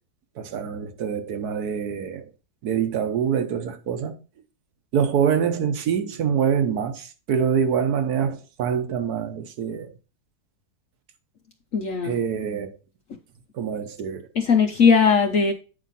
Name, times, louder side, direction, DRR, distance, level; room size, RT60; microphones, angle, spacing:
voice 1, 0.4-2.3 2.6-4.2 4.9-9.9 12.0-12.8 13.5-14.3, right 7 dB, 65° right, 1.4 m, -25 dB
voice 2, 11.7-12.1 14.3-15.5, left 5 dB, 55° left, 1.1 m, -18 dB
9.2 x 5.0 x 4.1 m
omnidirectional pair, 1.9 m